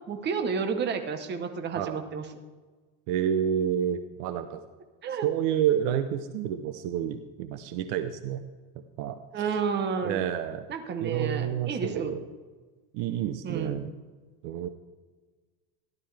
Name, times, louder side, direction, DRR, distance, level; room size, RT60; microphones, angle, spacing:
voice 1, 0.1-2.3 5.0-5.3 9.3-10.2 10.7-12.2 13.4-13.8, right 5 dB, 25° right, 6 dB, 1.0 m, -31 dB
voice 2, 3.1-4.6 5.2-8.4 9.0-9.5 10.0-10.6 11.0-12.2 12.9-13.9 14.4-14.7, right 9 dB, 55° right, 9 dB, 0.8 m, -29 dB
14.5 x 12.0 x 3.4 m, 1.3 s
supercardioid pair, 155°, 44 cm